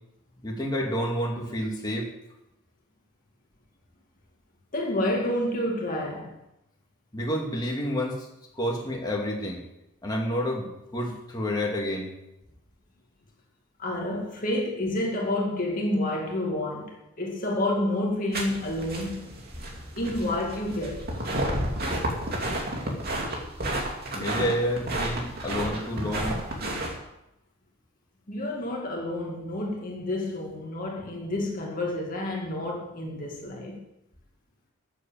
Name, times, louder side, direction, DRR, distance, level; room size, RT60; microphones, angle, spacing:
voice 1, 0.4-2.1 7.1-8.3 8.6-9.6 10.0-12.1 24.1-26.4, equal, 20° left, 2.4 m, -29 dB
voice 2, 4.7-6.4 13.8-19.3 20.0-21.1 28.3-33.8, left 1 dB, 40° left, 2.3 m, -29 dB
sound 1, 18.3-27.0, right 1 dB, 45° right, 2.8 m, -31 dB
13.0 x 7.6 x 7.5 m
head